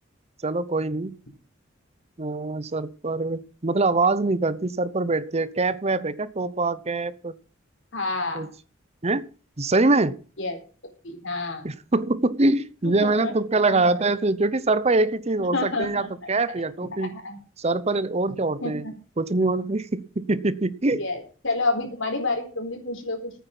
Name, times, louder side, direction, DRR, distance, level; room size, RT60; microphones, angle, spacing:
voice 1, 0.4-1.2 2.2-7.3 8.3-8.5 9.0-9.2 9.6-10.1 11.6-17.1 17.6-18.9 19.2-21.0, right 2 dB, 30° right, 16 dB, 0.8 m, -24 dB
voice 2, 7.9-8.5 10.4-10.6 11.0-11.7 12.8-13.3 13.7-13.8 15.4-16.1 17.1-17.4 18.6-18.9 20.9-23.3, left 3 dB, 70° left, 5 dB, 4.1 m, -29 dB
14.0 x 9.3 x 6.0 m, 0.39 s
head